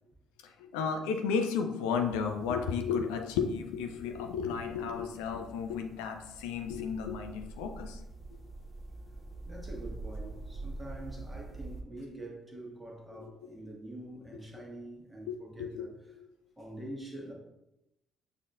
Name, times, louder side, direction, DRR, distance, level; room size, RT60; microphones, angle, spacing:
voice 1, 0.4-8.0 13.2-13.3 14.5-14.6 15.3-15.8 16.1-16.2, left 6 dB, 70° left, 0.4 m, -33 dB
sound 1, 1.9-11.8, right 2 dB, 5° left, 0.9 m, -46 dB
voice 2, 9.4-16.0 16.6-17.3, right 1 dB, 15° right, 1.2 m, -45 dB
6.8 x 2.6 x 2.4 m
figure-of-eight pair, 45°, 0 cm